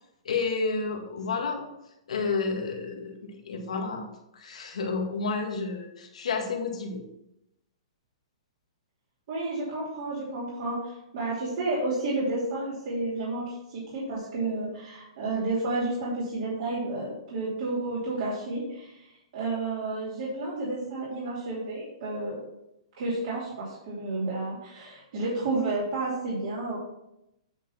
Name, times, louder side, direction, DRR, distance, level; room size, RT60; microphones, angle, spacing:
voice 1, 0.3-1.6 2.1-4.1 4.3-7.0, left 4 dB, 85° left, 3 dB, 1.8 m, -30 dB
voice 2, 9.3-19.0 19.3-22.4 23.0-26.8, right 2 dB, 55° right, -8 dB, 2.8 m, -31 dB
9.1 x 3.8 x 5.7 m, 0.84 s
hypercardioid pair, 155°, 3 cm